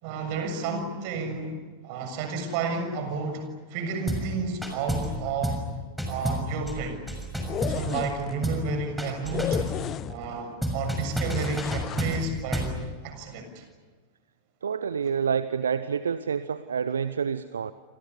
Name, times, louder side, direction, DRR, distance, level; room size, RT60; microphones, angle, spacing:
voice 1, 0.0-1.6 1.8-5.6 6.1-7.0 7.7-9.7 10.1-12.8 13.0-13.6, right 4 dB, 45° right, 7 dB, 6.8 m, -31 dB
sound 1, 4.1-4.3 4.6-5.2 5.4-5.7 6.0-8.1 8.4-8.7 9.0-9.8 10.6-12.8, equal, ahead, 6.3 m, -30 dB
sound 2, 7.4-8.3 9.3-10.4 11.3-12.3, left 10 dB, 30° left, 0.9 m, -34 dB
voice 2, 14.6-17.7, right 7 dB, 70° right, 15 dB, 0.8 m, -28 dB
28.5 x 28.0 x 6.9 m, 1.4 s
figure-of-eight pair, 90°, 0 cm